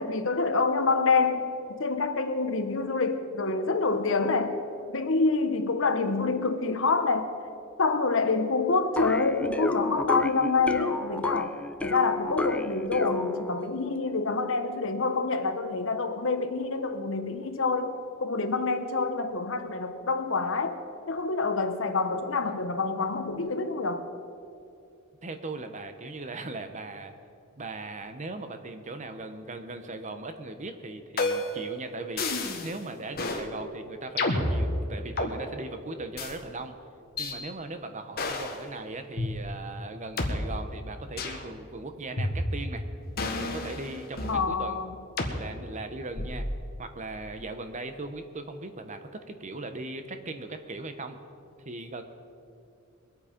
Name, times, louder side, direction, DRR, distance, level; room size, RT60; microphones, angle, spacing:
voice 1, 0.0-4.6 4.9-7.3 7.8-17.9 18.2-20.8 21.1-24.0 44.3-44.9, left 4 dB, 70° left, 1.0 m, -27 dB
sound 1, 9.0-13.8, left 2 dB, 5° left, 0.5 m, -32 dB
voice 2, 25.2-27.2 27.6-32.2 32.6-36.7 37.2-42.8 43.4-44.8 45.4-46.4 46.8-51.2 51.6-52.0, right 2 dB, 35° right, 1.0 m, -38 dB
sound 2, 31.2-31.6 32.2-32.7 33.2-33.4 34.2-35.3 36.2-36.3 37.2-37.3 38.2-38.6 39.2-39.3 40.2-40.3 41.2-41.4 42.2-42.7 43.2-44.4 45.2-45.4 46.2-46.5, left 2 dB, 50° left, 1.6 m, -30 dB
22.5 x 8.7 x 5.2 m
head